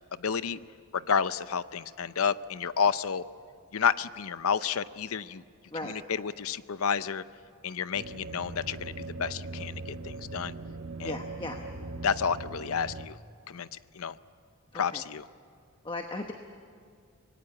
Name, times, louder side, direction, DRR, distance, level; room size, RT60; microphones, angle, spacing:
voice 1, 0.2-0.6 0.9-3.2 3.7-5.4 5.8-7.2 7.6-10.5 11.0-11.2 12.0-13.2 13.5-14.2 14.7-15.3, left 6 dB, 70° left, 15 dB, 0.6 m, -30 dB
sound 1, 7.9-13.1, right 2 dB, 65° right, 1.1 m, -40 dB
voice 2, 11.0-11.6 14.7-15.0 15.8-16.3, left 2 dB, 20° left, 4 dB, 1.0 m, -36 dB
25.5 x 20.0 x 8.7 m, 2.2 s
head